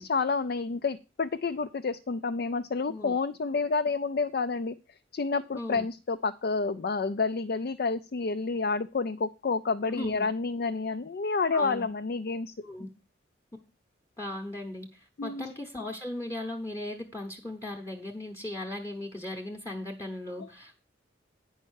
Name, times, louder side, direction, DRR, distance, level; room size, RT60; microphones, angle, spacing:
voice 1, 0.0-4.7 5.1-12.5 15.2-15.5 20.4-20.5, left 4 dB, 50° left, 9 dB, 0.4 m, -29 dB
voice 2, 5.5-5.8 9.9-10.3 11.5-11.9 12.6-12.9 14.2-20.8, left 1 dB, 15° left, 4 dB, 0.9 m, -37 dB
9.5 x 5.5 x 6.3 m, 0.31 s
head